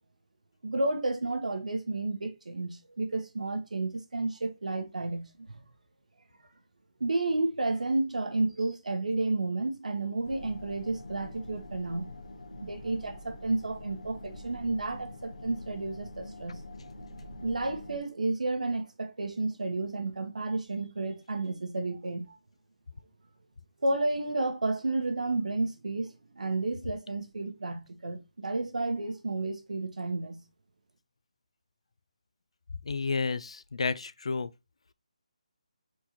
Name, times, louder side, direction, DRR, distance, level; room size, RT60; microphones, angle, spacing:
voice 1, 0.6-5.6 7.0-12.1 12.6-16.6 17.4-22.4 23.8-30.4, right 2 dB, 90° right, 1.0 m, -31 dB
sound 1, 10.2-18.0, left 1 dB, 80° left, 1.0 m, -45 dB
voice 2, 32.9-34.5, left 4 dB, 55° left, 0.3 m, -31 dB
4.4 x 3.8 x 2.9 m
hypercardioid pair, 180°, 4 cm